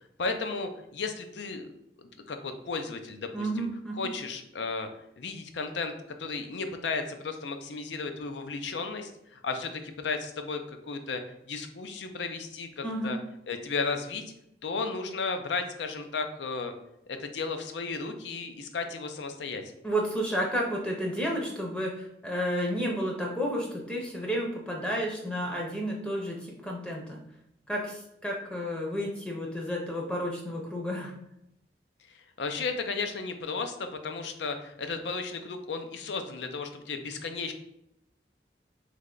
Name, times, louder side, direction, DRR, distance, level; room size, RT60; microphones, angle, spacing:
voice 1, 0.2-1.7 2.0-3.7 4.0-5.9 6.2-10.6 10.9-13.2 13.5-14.2 14.6-16.7 17.1-19.6 32.1-37.5, left 4 dB, 90° left, 7 dB, 0.5 m, -34 dB
voice 2, 3.3-4.1 12.8-13.2 19.8-27.2 27.7-31.1, equal, 5° left, -2 dB, 0.6 m, -31 dB
3.3 x 3.2 x 3.8 m, 0.80 s
head